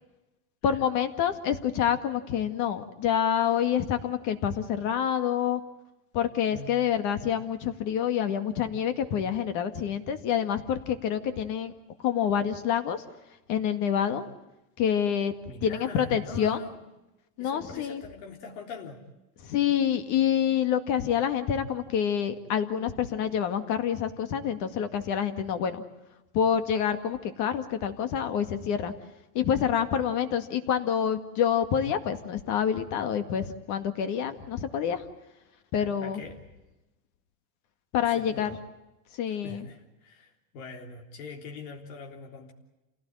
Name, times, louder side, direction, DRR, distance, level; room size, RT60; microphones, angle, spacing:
voice 1, 0.6-5.6 6.1-11.7 12.0-13.0 13.5-14.2 14.8-15.3 15.6-16.6 17.4-18.0 19.4-25.8 26.3-28.9 29.3-35.0 35.7-36.2 37.9-38.6 39.2-39.7, left 8 dB, 40° left, 9 dB, 2.1 m, -27 dB
voice 2, 15.5-16.8 17.4-19.0 35.8-36.4 38.1-38.6 39.3-42.5, left 4 dB, 65° left, 2 dB, 3.7 m, -43 dB
28.5 x 17.0 x 8.9 m, 0.99 s
supercardioid pair, 155°, 44 cm